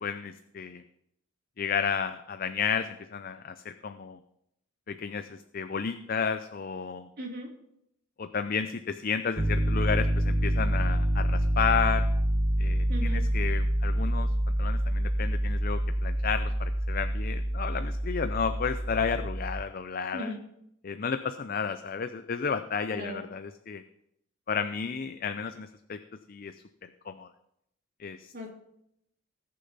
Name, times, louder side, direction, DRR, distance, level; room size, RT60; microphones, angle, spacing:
voice 1, 0.0-0.8 1.6-4.2 4.9-7.1 8.2-12.1 12.6-20.3 20.8-23.8 24.5-26.0 26.3-26.5 27.1-27.3 28.0-28.5, left 6 dB, 45° left, 10 dB, 0.5 m, -32 dB
voice 2, 7.2-7.5 12.9-13.2 20.1-20.4 22.9-23.2 28.3-28.5, equal, 50° right, -2 dB, 2.8 m, -37 dB
Piano, 9.4-19.6, right 1 dB, 30° right, 0.8 m, -27 dB
19.5 x 6.7 x 4.1 m, 0.77 s
head